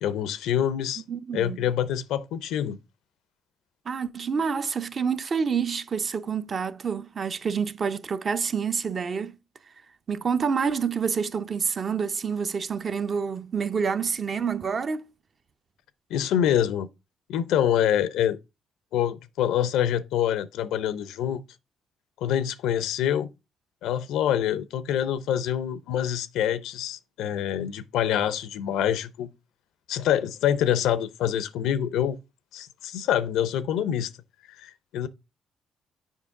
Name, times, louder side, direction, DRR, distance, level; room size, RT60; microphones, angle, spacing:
voice 1, 0.0-1.0 1.3-2.8 16.1-16.9 17.3-18.4 18.9-21.4 22.2-23.3 23.8-29.3 29.9-32.2 32.5-34.1 34.5-35.1, left 10 dB, 90° left, 0.5 m, -26 dB
voice 2, 1.1-1.6 3.9-9.3 10.1-15.1, right 6 dB, 45° right, 0.6 m, -28 dB
7.2 x 5.1 x 3.6 m
cardioid pair, 90°, 0 cm